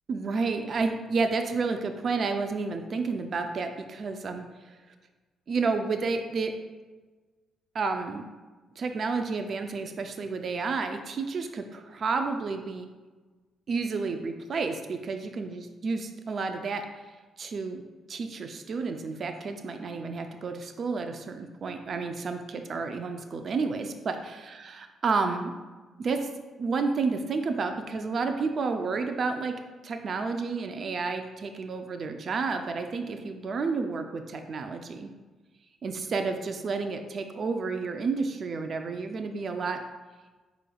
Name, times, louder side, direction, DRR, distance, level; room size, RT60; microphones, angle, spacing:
voice 1, 0.1-4.8 5.5-6.5 7.7-8.2 8.8-12.9 13.7-16.8 17.4-17.8 18.1-25.5 26.0-26.3 26.6-29.5 29.8-35.1 35.8-39.8, right 4 dB, 50° right, 6 dB, 0.4 m, -30 dB
5.0 x 4.6 x 2.3 m, 1.3 s
cardioid pair, 90°, 0 cm